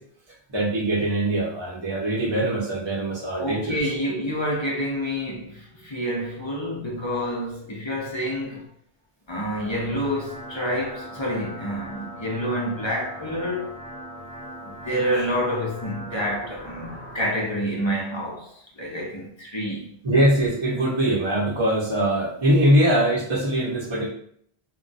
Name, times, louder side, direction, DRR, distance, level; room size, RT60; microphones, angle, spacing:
voice 1, 0.5-3.8 20.0-24.1, right 1 dB, 30° right, 0.7 m, -22 dB
voice 2, 3.4-8.6 9.3-13.8 14.6-20.0, equal, 35° left, 0.5 m, -28 dB
sound 1, 9.3-17.2, equal, 5° right, 0.9 m, -40 dB
2.2 x 2.2 x 3.9 m
omnidirectional pair, 1.1 m